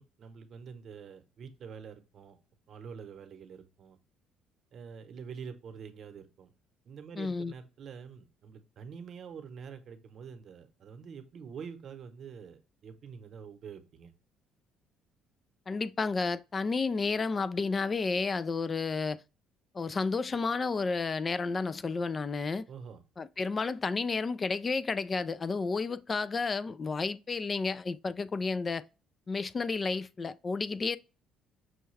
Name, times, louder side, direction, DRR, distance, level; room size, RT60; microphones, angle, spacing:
voice 1, 0.0-2.4 2.7-4.0 4.7-6.5 6.8-14.1 22.7-23.0, right 6 dB, 55° right, 0.9 m, -46 dB
voice 2, 7.2-7.5 15.7-19.2 19.7-22.6 23.2-28.8 29.3-31.0, left 4 dB, 30° left, 0.3 m, -31 dB
6.3 x 2.3 x 3.2 m
cardioid pair, 95°, 0 cm